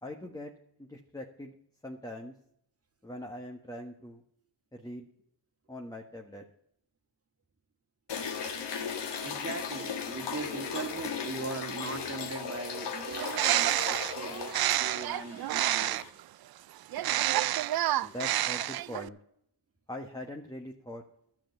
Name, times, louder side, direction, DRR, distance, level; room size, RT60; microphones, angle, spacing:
voice 1, 0.0-0.5 0.8-1.5 1.8-2.3 3.0-4.2 4.7-5.1 5.7-6.4 18.0-19.2 19.9-21.0, left 1 dB, 10° left, 3 dB, 1.3 m, -42 dB
sound 1, 8.1-16.1, left 6 dB, 75° left, 1.8 m, -37 dB
voice 2, 9.2-16.0 17.0-17.1 18.0-18.1, right 4 dB, 35° right, 7 dB, 1.8 m, -40 dB
Bird, 13.1-16.2 16.9-19.1, right 14 dB, 60° right, 0.5 m, -29 dB
12.0 x 7.6 x 6.7 m, 0.72 s
cardioid pair, 70°, 42 cm